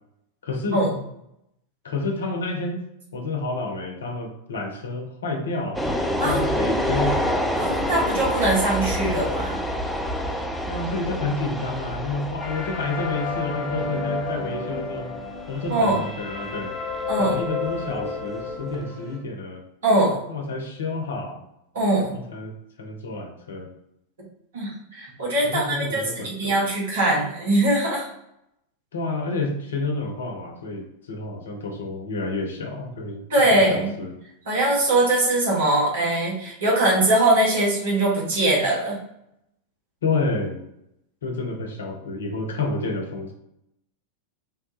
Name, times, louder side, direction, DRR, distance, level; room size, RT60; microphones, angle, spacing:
voice 1, 0.4-0.8 1.8-2.8 3.1-5.9 6.2-7.2 10.6-15.2 15.5-16.7 17.2-19.6 20.3-21.4 22.1-22.5 22.8-23.7 25.4-26.7 28.9-33.2 33.5-34.1 40.0-40.6 41.2-43.3, left 3 dB, 65° left, 3 dB, 0.6 m, -29 dB
sound 1, 5.7-18.8, equal, 5° left, 0.4 m, -28 dB
voice 2, 7.5-9.6 15.7-16.0 17.1-17.4 19.8-20.2 21.7-22.1 24.5-28.1 33.3-33.9 34.5-39.0, right 1 dB, 65° right, -4 dB, 1.1 m, -21 dB
sound 2, 12.4-19.2, left 4 dB, 25° left, 1.1 m, -32 dB
3.4 x 2.2 x 3.0 m, 0.80 s
figure-of-eight pair, 90°, 0 cm